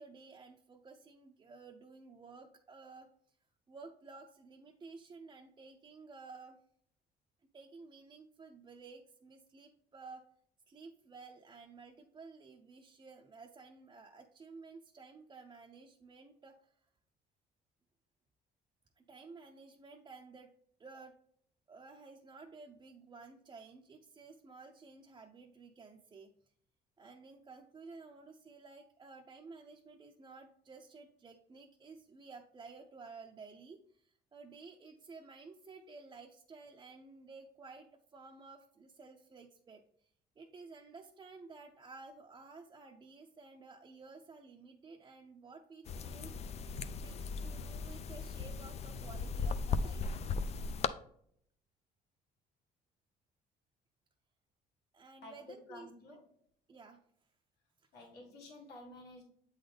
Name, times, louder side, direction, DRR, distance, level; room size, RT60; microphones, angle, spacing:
voice 1, 0.0-3.1 3.7-6.6 7.5-10.2 10.7-16.6 19.0-20.5 20.8-21.2 21.7-26.3 27.0-39.8 40.4-46.4 46.9-50.3 54.9-56.2 56.7-57.0, right 4 dB, 25° right, 0 dB, 0.6 m, -53 dB
sound 1, 45.9-50.9, left 4 dB, 40° left, 0.4 m, -37 dB
voice 2, 55.2-56.3 57.9-59.2, left 2 dB, 70° left, -1 dB, 1.8 m, -52 dB
7.8 x 3.9 x 3.4 m, 0.65 s
cardioid pair, 110°, 17 cm